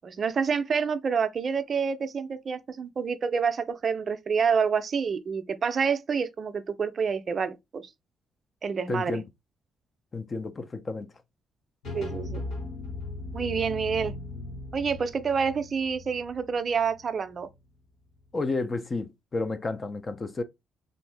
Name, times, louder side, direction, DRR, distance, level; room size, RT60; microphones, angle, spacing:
voice 1, 0.0-7.8 8.6-9.2 11.9-12.4 13.3-14.1 14.7-17.5, right 6 dB, 45° right, 0.4 m, -28 dB
voice 2, 8.9-9.2 10.1-11.1 18.3-20.4, left 3 dB, 30° left, 0.5 m, -31 dB
sound 1, 11.8-17.5, left 2 dB, 80° left, 1.3 m, -38 dB
2.7 x 2.6 x 3.2 m
cardioid pair, 90°, 0 cm